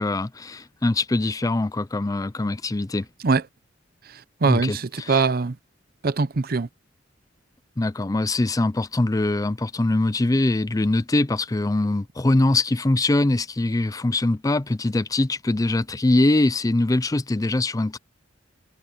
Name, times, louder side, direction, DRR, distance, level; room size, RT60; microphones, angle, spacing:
voice 1, 0.0-3.1 4.5-5.2 7.8-18.0, left 2 dB, 20° left, 0.5 m, -23 dB
voice 2, 4.1-5.6 6.0-6.7, right 4 dB, 50° right, 0.7 m, -22 dB
head